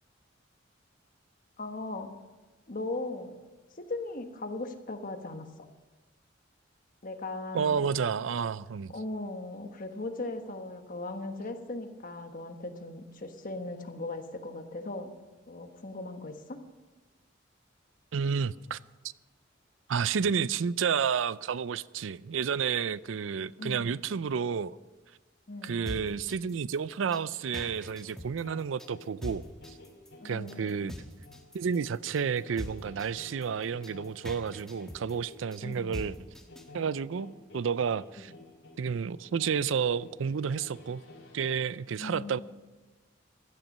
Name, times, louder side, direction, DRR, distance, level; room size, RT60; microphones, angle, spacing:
voice 1, 1.6-2.1 2.7-3.3 3.8-5.5 7.0-7.8 8.9-15.1 15.5-16.6 23.6-23.9 25.5-25.9 30.2-30.9 35.6-36.0 38.2-38.4 42.0-42.4, left 2 dB, 45° left, 1.3 m, -38 dB
voice 2, 7.5-8.9 18.1-18.8 19.9-24.8 25.6-29.4 30.2-31.0 31.5-36.2 36.7-38.3 38.8-41.0 41.3-42.4, right 6 dB, 90° right, 0.4 m, -31 dB
sound 1, 25.7-36.7, equal, 5° left, 1.3 m, -42 dB
sound 2, 28.4-41.5, left 2 dB, 75° left, 2.7 m, -52 dB
16.0 x 12.0 x 5.4 m
head